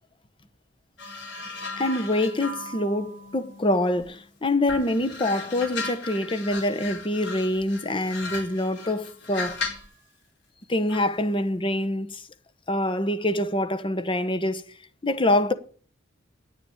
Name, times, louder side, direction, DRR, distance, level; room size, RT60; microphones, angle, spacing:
sound 1, 1.0-4.2 4.7-9.9 10.9-11.1, left 3 dB, 65° left, 4.6 m, -36 dB
voice 1, 1.8-9.6 10.7-12.3 12.7-14.6 15.0-15.5, left 1 dB, 25° left, 1.0 m, -25 dB
10.0 x 6.9 x 8.5 m
head